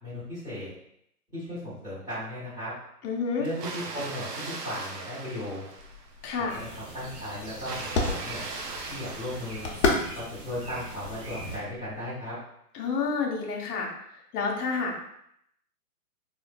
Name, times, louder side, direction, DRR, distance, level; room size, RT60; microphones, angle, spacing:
voice 1, 0.0-0.7 1.3-2.7 3.4-5.6 6.4-8.4 8.9-9.7 10.1-12.3, left 1 dB, 10° right, -13 dB, 1.0 m, -36 dB
voice 2, 3.0-3.5 6.2-6.6 12.7-13.9 14.3-15.0, left 4 dB, 75° left, -1 dB, 0.8 m, -29 dB
Water, 3.4-6.3 7.5-10.3, right 3 dB, 85° right, 0.7 m, -39 dB
sound 1, 5.8-12.1, left 3 dB, 45° left, 0.6 m, -33 dB
sound 2, 6.5-11.6, right 2 dB, 45° right, 1.0 m, -42 dB
3.1 x 2.4 x 2.2 m, 0.74 s
hypercardioid pair, 140°, 47 cm